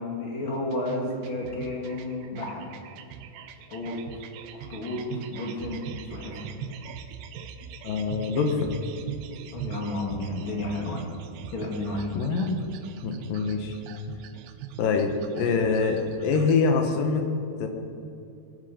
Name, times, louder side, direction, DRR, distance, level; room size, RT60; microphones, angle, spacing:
voice 1, 0.0-2.7 3.7-4.0 4.5-6.5 9.5-11.1 11.5-12.2, left 2 dB, 40° left, -1 dB, 2.2 m, -32 dB
sound 1, 0.7-16.6, right 7 dB, 85° right, 2.8 m, -42 dB
voice 2, 7.8-8.7 12.2-12.6 13.0-13.8 14.8-17.3 17.6-17.7, left 4 dB, 65° left, 4 dB, 2.7 m, -25 dB
20.0 x 9.9 x 5.1 m, 2.6 s
omnidirectional pair, 4.7 m